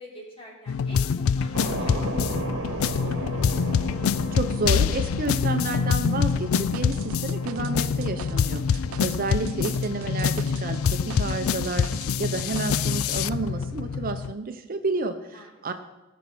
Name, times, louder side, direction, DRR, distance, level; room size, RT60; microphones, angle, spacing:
voice 1, 0.0-3.1 15.3-15.6, equal, 30° left, -2 dB, 3.4 m, -47 dB
sound 1, 0.7-14.3, left 6 dB, 90° left, 0.4 m, -26 dB
sound 2, 1.5-13.5, right 1 dB, 60° right, 1.3 m, -37 dB
voice 2, 4.3-15.7, right 3 dB, 45° right, 8 dB, 0.7 m, -30 dB
sound 3, 6.6-12.1 12.4-13.0, right 7 dB, 80° right, 0.4 m, -41 dB
18.0 x 6.4 x 5.5 m, 1.0 s
head